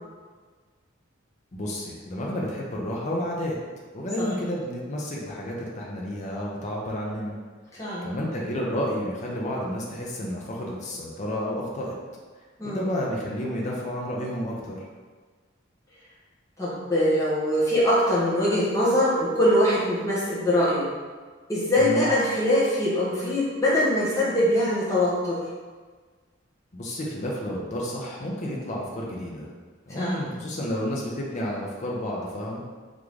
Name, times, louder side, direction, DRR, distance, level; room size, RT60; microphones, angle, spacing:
voice 1, 1.5-3.6 3.9-7.3 8.0-11.9 12.6-14.8 21.8-22.1 26.7-29.5 29.9-32.6, equal, 40° left, -3 dB, 0.6 m, -31 dB
voice 2, 7.8-8.1 12.6-12.9 16.6-20.8 21.5-25.4 29.9-30.3, left 1 dB, 15° left, -9 dB, 1.4 m, -23 dB
3.7 x 3.6 x 3.2 m, 1.4 s
head